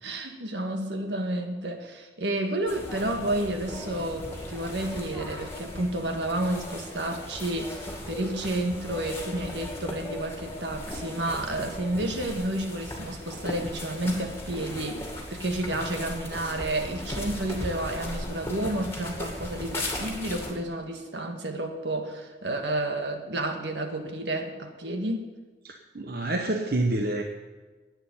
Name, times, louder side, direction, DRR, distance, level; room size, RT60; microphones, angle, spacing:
voice 1, 0.0-25.3, right 1 dB, 75° right, 4 dB, 1.8 m, -31 dB
sound 1, 2.7-20.5, left 1 dB, 15° left, 2.3 m, -37 dB
voice 2, 25.6-27.2, right 2 dB, 55° right, 3 dB, 0.9 m, -28 dB
11.0 x 9.1 x 9.0 m, 1.3 s
head